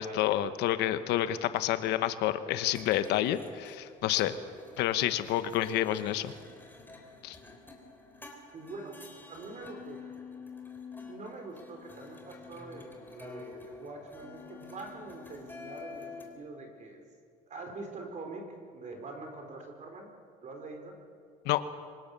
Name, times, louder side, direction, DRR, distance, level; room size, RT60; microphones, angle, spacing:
voice 1, 0.0-4.3 4.8-6.3 7.2-7.4 21.4-21.6, left 12 dB, 90° left, 11 dB, 1.1 m, -29 dB
sound 1, 2.6-16.3, left 4 dB, 10° left, 3.6 m, -49 dB
voice 2, 8.5-10.1 11.0-17.0 17.5-20.1 20.4-21.0, right 3 dB, 45° right, 3 dB, 4.7 m, -44 dB
25.0 x 19.5 x 6.9 m, 2.2 s
cardioid pair, 110°, 17 cm